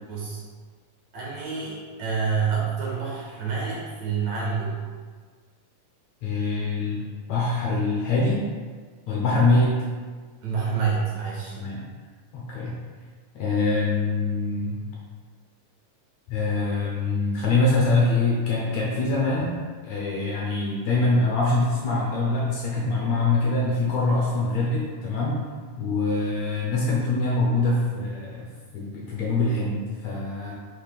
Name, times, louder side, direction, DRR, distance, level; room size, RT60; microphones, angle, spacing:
voice 1, 0.1-0.4 1.1-4.8 10.4-11.6, right 5 dB, 65° right, -5 dB, 2.1 m, -28 dB
voice 2, 6.2-8.4 9.1-9.8 11.6-11.9 12.3-12.8 13.4-14.8 16.3-19.6 19.8-25.4 25.8-28.5 28.7-30.5, left 3 dB, 70° left, -4 dB, 1.8 m, -24 dB
6.4 x 3.2 x 5.2 m, 1.5 s
omnidirectional pair, 3.9 m